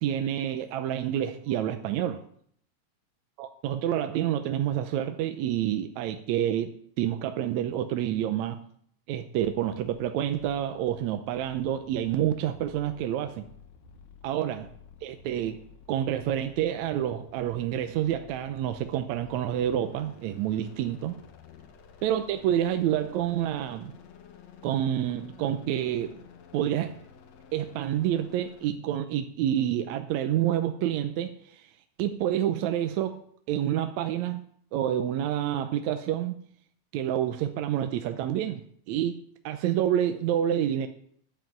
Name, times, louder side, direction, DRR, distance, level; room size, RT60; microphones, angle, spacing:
voice 1, 0.0-2.2 3.4-6.7 7.0-8.6 9.1-13.5 14.2-14.7 15.0-15.6 15.9-21.2 22.0-23.9 24.6-26.2 26.5-27.0 27.5-31.7 32.0-33.2 33.5-34.4 34.7-36.4 36.9-39.2 39.5-40.9, right 11 dB, 80° right, 2.0 m, -28 dB
sound 1, 9.4-28.7, left 6 dB, 70° left, 2.3 m, -52 dB
10.0 x 7.4 x 9.1 m
omnidirectional pair, 3.3 m